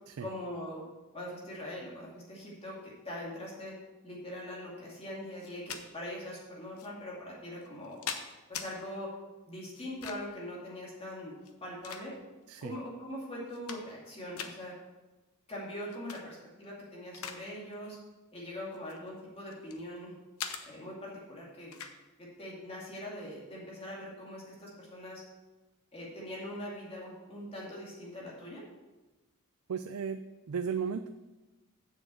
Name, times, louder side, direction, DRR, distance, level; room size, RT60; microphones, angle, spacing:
voice 1, 0.2-0.8 1.1-3.7 4.0-8.0 8.5-9.1 9.5-12.1 12.6-14.7 15.5-18.0 18.3-20.1 20.7-21.8 22.2-25.2 25.9-28.6, left 1 dB, 25° left, -5 dB, 2.5 m, -42 dB
sound 1, 5.4-5.8 6.8-6.9 7.6-8.7 9.8-10.4 11.4-12.4 13.0-13.1 13.4-14.1 14.4-14.6 15.9-16.2 16.6-17.4 17.7-18.0 18.7-19.8 20.4-20.6 21.7-22.0, left 7 dB, 90° left, 0.9 m, -41 dB
voice 2, 29.7-30.2 30.5-31.1, right 6 dB, 85° right, 9 dB, 0.4 m, -35 dB
7.1 x 6.2 x 7.8 m, 1.1 s
head